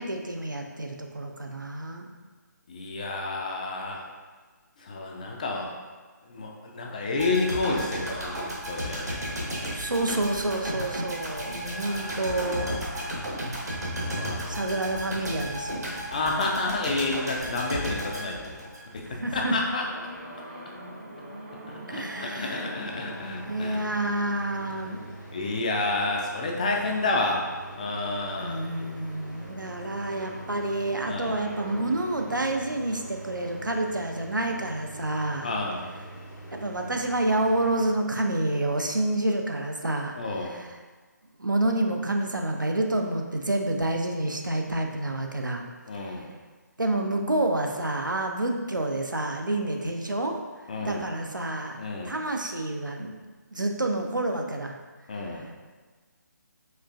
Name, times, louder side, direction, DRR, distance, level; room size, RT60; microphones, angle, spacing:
voice 1, 0.0-2.1 9.4-13.3 14.5-16.0 19.1-19.6 21.9-22.6 23.5-25.1 28.4-35.5 36.5-40.1 40.4-40.7 41.4-45.6 45.9-46.2 46.8-50.4 50.8-51.8 52.0-53.2 53.5-54.7 55.3-55.4, right 1 dB, 85° right, 2 dB, 0.5 m, -29 dB
voice 2, 2.7-4.1 4.8-5.7 6.3-9.8 11.5-13.1 14.0-14.9 16.1-18.7 19.3-19.8 21.7-23.8 25.3-27.4 27.7-28.6 31.1-31.4 35.4-35.9 40.1-40.5 45.9-46.3 50.7-51.1 51.8-52.1 55.1-55.5, left 2 dB, 25° left, 0 dB, 0.3 m, -30 dB
sound 1, 7.2-19.2 19.5-19.7, equal, 60° right, 0.9 m, -34 dB
sound 2, 19.8-35.6, right 1 dB, 25° right, 0.6 m, -46 dB
sound 3, 22.9-37.9, right 1 dB, 85° left, 1.2 m, -44 dB
4.4 x 3.1 x 2.4 m, 1.4 s
figure-of-eight pair, 145°, 10 cm